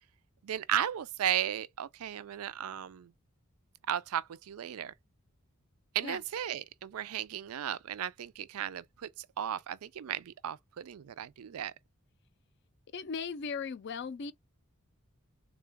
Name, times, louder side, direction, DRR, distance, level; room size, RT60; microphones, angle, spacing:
voice 1, 0.4-3.1 3.9-4.9 5.9-11.7, right 10 dB, 85° right, 0.4 m, -35 dB
voice 2, 12.9-14.3, left 5 dB, 55° left, 0.4 m, -37 dB
3.7 x 2.3 x 3.4 m
head